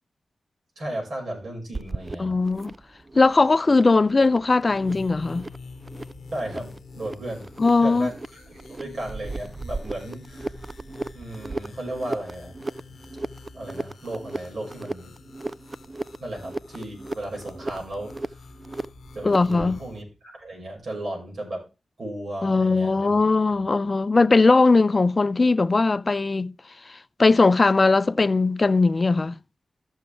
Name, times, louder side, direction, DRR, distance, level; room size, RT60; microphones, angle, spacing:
voice 1, 0.8-2.4 6.3-7.5 7.8-10.5 11.1-12.5 13.5-15.1 16.2-18.4 19.1-21.7 22.0-23.2, right 1 dB, 65° right, 5.8 m, -35 dB
sound 1, 1.7-19.8, right 2 dB, 35° right, 0.5 m, -37 dB
voice 2, 2.2-2.7 3.1-5.5 7.6-8.1 19.2-19.8 22.4-26.5 27.2-29.4, left 3 dB, 40° left, 0.5 m, -19 dB
sound 2, 4.6-20.0, left 4 dB, 80° left, 1.0 m, -46 dB
14.5 x 6.4 x 3.4 m
cardioid pair, 55°, 0 cm